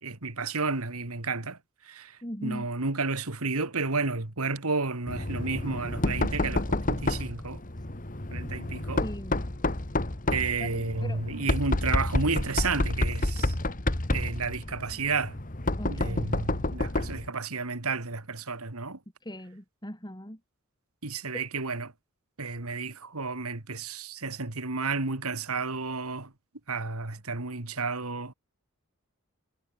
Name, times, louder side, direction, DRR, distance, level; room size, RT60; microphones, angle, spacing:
voice 1, 0.0-1.6 1.8-7.6 8.3-9.0 10.3-13.5 14.1-15.4 15.9-19.0 21.0-21.9 22.4-26.3 26.7-28.3, right 4 dB, 80° right, 2.3 m, -32 dB
voice 2, 2.2-2.7 9.0-9.5 10.6-11.2 15.8-16.3 19.2-20.4 21.3-21.4, equal, 20° left, 4.9 m, -39 dB
Knock, 5.1-17.3, left 2 dB, 35° left, 1.8 m, -29 dB
head